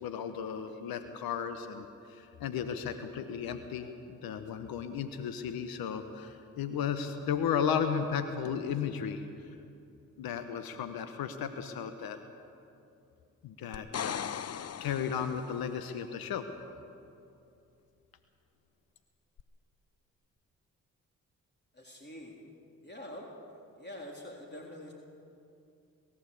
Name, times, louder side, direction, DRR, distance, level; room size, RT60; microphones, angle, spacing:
voice 1, 0.0-9.6 10.2-12.2 13.4-16.4, left 7 dB, 80° left, 9 dB, 1.1 m, -35 dB
sound 1, 13.7-15.7 19.4-19.5, left 8 dB, 45° left, 0.7 m, -38 dB
voice 2, 21.7-22.4 22.8-24.9, left 1 dB, 30° left, -1 dB, 3.7 m, -46 dB
21.5 x 14.5 x 8.5 m, 2.6 s
supercardioid pair, 45°, 36 cm